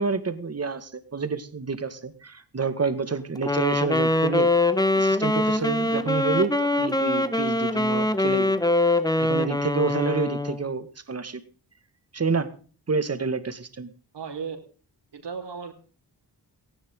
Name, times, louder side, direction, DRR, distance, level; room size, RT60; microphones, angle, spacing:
voice 1, 0.0-4.5 4.9-8.5 9.2-11.4 12.1-12.5 12.9-13.9, right 4 dB, 35° right, 11 dB, 2.0 m, -28 dB
Wind instrument woodwind instrument, 3.4-10.6, left 2 dB, 10° left, 1.3 m, -23 dB
voice 2, 14.1-14.6 15.1-15.7, right 6 dB, 85° right, 4 dB, 4.9 m, -34 dB
19.0 x 18.0 x 3.9 m, 0.39 s
wide cardioid pair, 165°, 41 cm